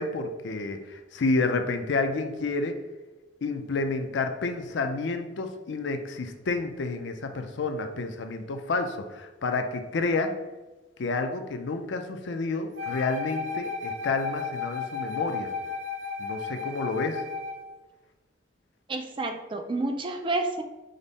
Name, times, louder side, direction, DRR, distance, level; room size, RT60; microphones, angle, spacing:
voice 1, 0.0-2.8 3.4-10.3 11.0-15.5 16.2-17.2, left 3 dB, 70° left, 6 dB, 0.4 m, -29 dB
Wind instrument woodwind instrument, 12.8-17.7, left 4 dB, 85° right, 0.6 m, -34 dB
voice 2, 18.9-20.6, right 2 dB, 25° right, 6 dB, 0.3 m, -29 dB
5.1 x 2.1 x 4.0 m, 1.1 s
head